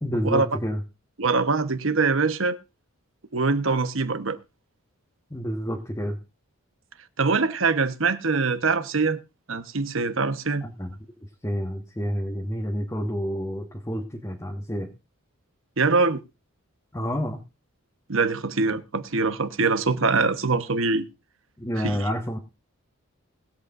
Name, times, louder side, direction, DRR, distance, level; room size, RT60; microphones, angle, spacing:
voice 1, 0.0-0.8 5.3-6.2 10.6-10.9 11.4-14.9 16.9-17.4 21.6-22.4, equal, 15° left, 1.4 m, -29 dB
voice 2, 1.2-2.6 3.3-4.4 7.2-9.2 9.5-10.6 15.8-16.2 18.1-21.0 21.8-22.0, right 4 dB, 65° right, 1.1 m, -23 dB
21.0 x 8.1 x 2.5 m
head